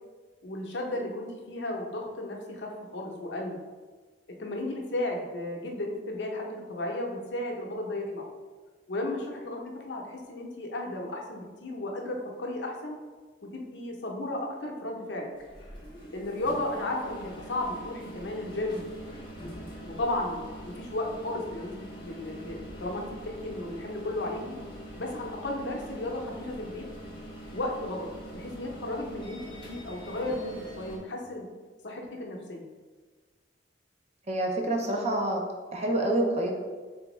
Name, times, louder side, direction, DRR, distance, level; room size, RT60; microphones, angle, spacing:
voice 1, 0.4-3.6 4.4-8.3 8.9-13.0 13.4-15.3 16.1-18.8 19.8-24.6 25.0-26.8 27.5-31.5 31.8-32.6, left 1 dB, 70° left, 1 dB, 0.6 m, -34 dB
sound 1, 15.3-31.0, right 1 dB, 30° left, 0.9 m, -43 dB
voice 2, 34.3-35.4 35.7-36.5, right 1 dB, 35° right, 1 dB, 0.5 m, -27 dB
3.4 x 3.4 x 3.0 m, 1.4 s
head